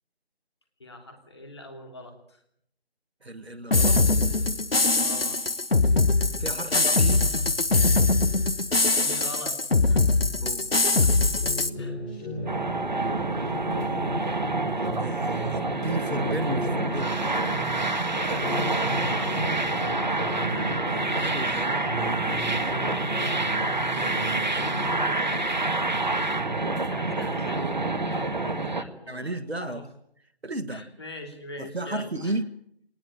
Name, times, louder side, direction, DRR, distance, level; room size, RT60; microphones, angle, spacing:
voice 1, 0.8-2.4 4.9-5.4 8.8-9.6 9.9-10.1 11.0-11.1 11.8-12.0 18.1-20.8 26.5-27.6 28.0-29.8 30.7-32.3, left 1 dB, 25° left, 5 dB, 3.1 m, -43 dB
voice 2, 3.2-4.2 6.4-7.3 10.4-10.7 12.8-13.2 15.0-17.1 21.1-21.8 22.2-22.4 23.9-25.3 29.1-29.8 30.4-30.8 31.6-32.5, right 2 dB, 80° right, 11 dB, 1.7 m, -34 dB
sound 1, 3.7-11.7, left 3 dB, 65° left, 1.3 m, -22 dB
sound 2, 11.4-17.9 18.3-21.6 21.8-25.0, equal, 10° left, 3.5 m, -36 dB
sound 3, 12.5-28.8, right 2 dB, 45° right, 1.5 m, -27 dB
19.5 x 19.5 x 8.8 m, 0.70 s
figure-of-eight pair, 165°, 31 cm